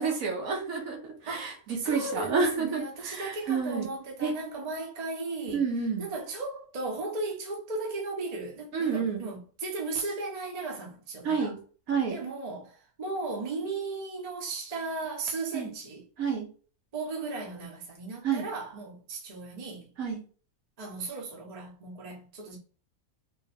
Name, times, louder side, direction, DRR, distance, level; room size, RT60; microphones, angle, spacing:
voice 1, 0.0-3.9 4.2-4.3 5.5-6.1 8.7-9.2 11.2-11.6 11.9-12.2 15.5-15.7 16.2-16.5 18.2-18.4 20.0-20.2, right 5 dB, 70° right, 1.6 m, -29 dB
voice 2, 1.3-5.6 6.0-11.5 12.1-16.1 16.9-19.9 20.8-22.6, right 3 dB, 30° right, 1.0 m, -36 dB
3.7 x 2.6 x 4.2 m
omnidirectional pair, 1.5 m